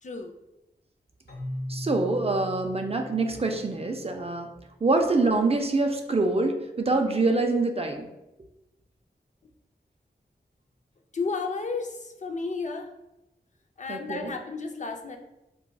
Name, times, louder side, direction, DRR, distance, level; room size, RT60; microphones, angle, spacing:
voice 1, 0.0-0.3 11.1-12.9 13.8-15.2, left 4 dB, 45° left, 3 dB, 0.4 m, -32 dB
Keyboard (musical), 1.3-5.0, left 1 dB, 75° left, 0.8 m, -39 dB
voice 2, 1.7-4.5 4.8-8.1 13.9-14.3, right 3 dB, 35° right, 4 dB, 0.4 m, -25 dB
4.0 x 2.2 x 2.2 m, 0.94 s
wide cardioid pair, 60°, 18 cm